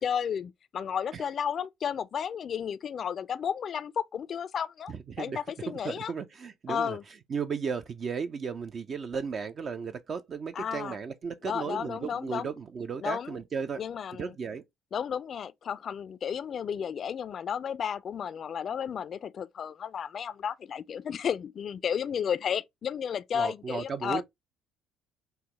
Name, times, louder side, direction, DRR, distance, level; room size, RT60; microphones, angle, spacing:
voice 1, 0.0-6.1 6.7-7.0 10.5-11.0 11.4-12.5 13.0-13.4 13.8-14.3 14.9-24.2, left 8 dB, 50° left, 0.3 m, -33 dB
voice 2, 4.9-5.4 5.7-7.0 7.3-13.8 14.2-14.6 23.3-24.2, right 5 dB, 45° right, 0.4 m, -35 dB
5.5 x 2.0 x 2.9 m
hypercardioid pair, 55°, 0 cm